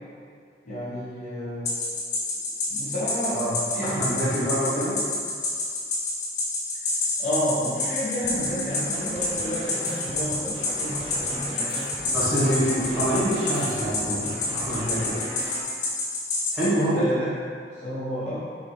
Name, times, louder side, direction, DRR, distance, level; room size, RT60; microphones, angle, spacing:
voice 1, 0.6-1.7 2.7-3.4 3.7-4.8 7.2-12.1 16.9-17.3 17.7-18.4, equal, 40° left, -10 dB, 0.9 m, -31 dB
sound 1, 1.7-16.7, left 3 dB, 65° left, 0.9 m, -27 dB
voice 2, 3.8-5.0 12.1-15.2 16.5-17.0, right 1 dB, ahead, -13 dB, 1.3 m, -26 dB
sound 2, 8.2-15.6, right 1 dB, 35° right, 0.5 m, -38 dB
4.5 x 2.9 x 3.3 m, 2.1 s
head